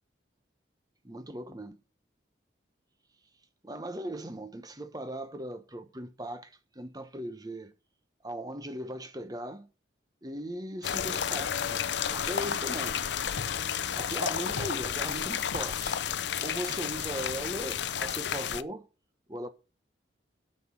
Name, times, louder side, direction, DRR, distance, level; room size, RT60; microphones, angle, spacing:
voice 1, 1.0-1.8 3.6-7.7 8.2-9.7 10.2-11.8 12.1-13.0 14.0-16.0 16.4-18.9 19.3-19.5, right 1 dB, 20° right, 1.0 m, -38 dB
sound 1, 10.8-18.6, left 8 dB, 65° left, 0.5 m, -31 dB
9.0 x 6.5 x 6.2 m
head